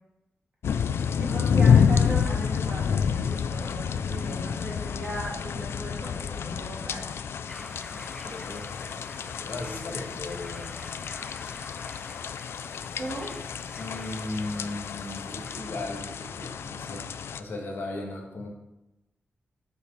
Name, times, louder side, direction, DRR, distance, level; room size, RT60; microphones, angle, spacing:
sound 1, 0.6-17.4, left 7 dB, 80° left, 0.4 m, -28 dB
voice 1, 1.2-7.0 13.0-13.3, right 1 dB, 30° right, -5 dB, 3.3 m, -37 dB
sound 2, 7.5-15.6, left 1 dB, 15° left, 0.4 m, -47 dB
voice 2, 7.9-10.7 13.8-17.1 17.4-18.5, left 2 dB, 60° left, -1 dB, 1.7 m, -37 dB
6.9 x 4.8 x 6.7 m, 0.94 s
wide cardioid pair, 145°, 4 cm